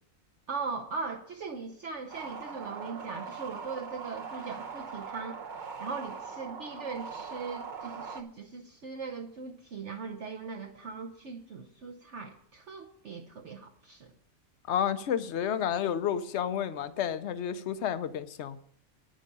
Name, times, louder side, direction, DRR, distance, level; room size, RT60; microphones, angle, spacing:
voice 1, 0.5-5.4 5.8-14.1, right 4 dB, 60° right, 1.1 m, -39 dB
sound 1, 2.1-8.2, right 5 dB, 40° right, 0.8 m, -41 dB
voice 2, 14.7-18.6, left 9 dB, 60° left, 0.9 m, -30 dB
9.9 x 9.1 x 5.4 m
omnidirectional pair, 1.5 m